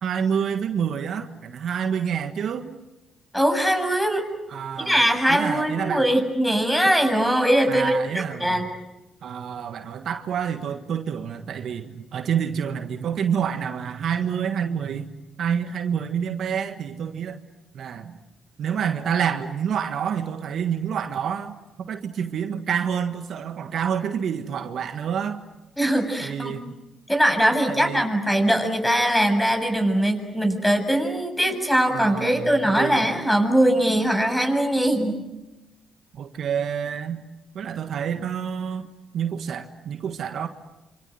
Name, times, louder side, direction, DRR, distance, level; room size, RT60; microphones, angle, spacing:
voice 1, 0.0-2.8 4.5-6.1 7.7-8.6 9.2-15.1 15.4-17.4 17.7-18.2 18.6-25.4 26.2-26.8 27.7-28.1 31.5-33.1 36.1-37.2 37.5-38.9 39.1-40.5, right 8 dB, 65° right, 8 dB, 1.6 m, -28 dB
voice 2, 3.3-4.3 4.8-8.0 8.4-8.7 25.8-26.5 27.1-35.2, equal, 5° left, 6 dB, 7.6 m, -21 dB
27.0 x 27.0 x 7.9 m, 0.99 s
supercardioid pair, 55°, 0 cm